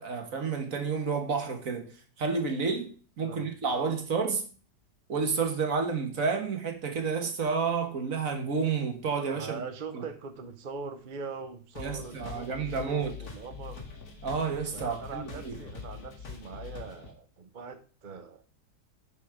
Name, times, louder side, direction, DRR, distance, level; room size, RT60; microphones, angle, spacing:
voice 1, 0.0-1.9 2.2-4.4 5.1-9.6 9.9-10.0 11.8-13.1 14.2-15.6, right 5 dB, 55° right, 1.8 m, -30 dB
voice 2, 3.2-3.9 9.3-13.9 14.7-18.4, right 5 dB, 40° right, 0.8 m, -42 dB
sound 1, 11.8-17.1, left 5 dB, 65° left, 2.5 m, -44 dB
10.5 x 5.2 x 4.9 m
omnidirectional pair, 1.7 m